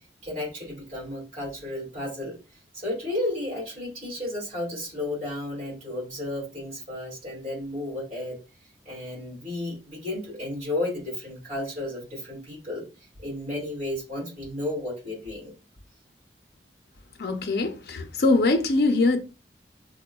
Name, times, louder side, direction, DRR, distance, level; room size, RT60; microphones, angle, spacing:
voice 1, 0.2-2.4 2.7-8.4 8.9-12.8 13.2-15.5, left 1 dB, 45° right, 2.2 m, -33 dB
voice 2, 17.2-19.2, left 2 dB, 60° left, 0.5 m, -22 dB
6.4 x 2.2 x 2.2 m
head